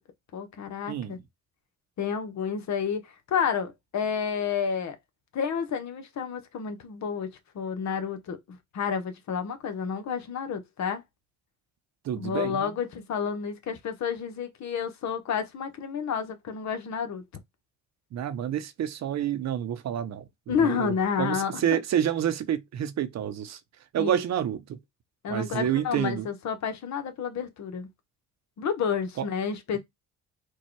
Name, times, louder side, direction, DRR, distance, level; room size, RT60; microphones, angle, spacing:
voice 1, 0.3-1.2 2.0-5.0 5.3-7.3 7.5-11.0 12.2-17.2 20.5-21.8 24.0-24.2 25.2-27.9 28.6-29.8, left 7 dB, 65° left, 1.1 m, -30 dB
voice 2, 0.9-1.2 12.0-12.8 18.1-23.6 23.9-24.8 25.3-26.3, right 10 dB, 60° right, 0.7 m, -29 dB
4.6 x 2.4 x 4.5 m
cardioid pair, 90°, 30 cm